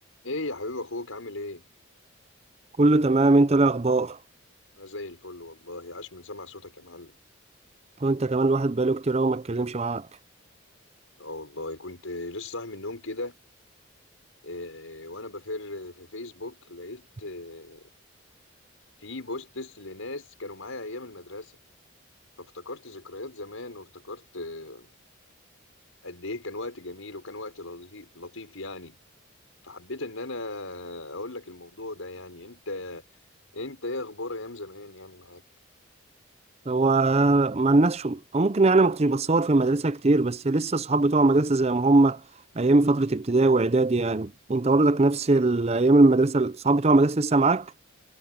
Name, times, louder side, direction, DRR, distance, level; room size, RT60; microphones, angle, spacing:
voice 1, 0.2-1.6 4.8-7.2 11.2-13.3 14.4-17.8 19.0-21.5 22.4-24.9 26.0-29.0 29.6-33.0 33.5-35.4, left 2 dB, 80° left, 5.4 m, -37 dB
voice 2, 2.8-4.2 8.0-10.1 36.7-42.2 42.6-47.7, right 2 dB, 30° right, 0.5 m, -21 dB
head